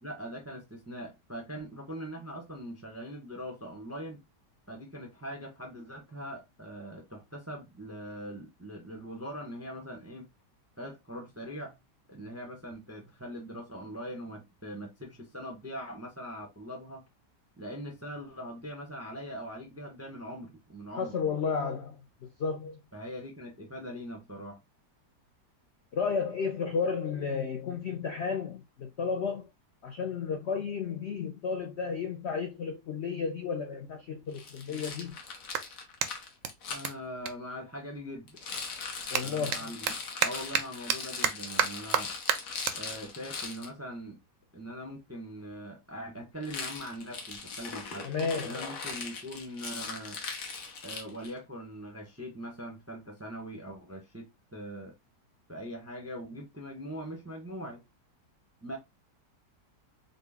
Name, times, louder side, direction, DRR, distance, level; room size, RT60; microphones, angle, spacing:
voice 1, 0.0-4.2 4.7-10.3 10.8-11.8 12.1-17.0 17.6-21.2 22.9-24.6 36.7-38.4 39.2-40.0 40.2-42.2 42.7-44.2 44.5-48.1 48.4-50.2 50.8-54.9 55.5-57.8 58.6-58.8, equal, 20° right, 0.4 m, -42 dB
voice 2, 21.0-22.8 25.9-29.5 29.8-35.2 39.1-39.7 48.0-48.6, left 5 dB, 80° left, 0.6 m, -33 dB
Clapping, 34.2-38.2 38.5-45.2, right 8 dB, 70° right, 0.7 m, -34 dB
Rattle, 34.3-36.9 38.3-43.7 46.4-51.4, left 4 dB, 60° left, 1.2 m, -40 dB
3.8 x 2.1 x 3.4 m
omnidirectional pair, 1.8 m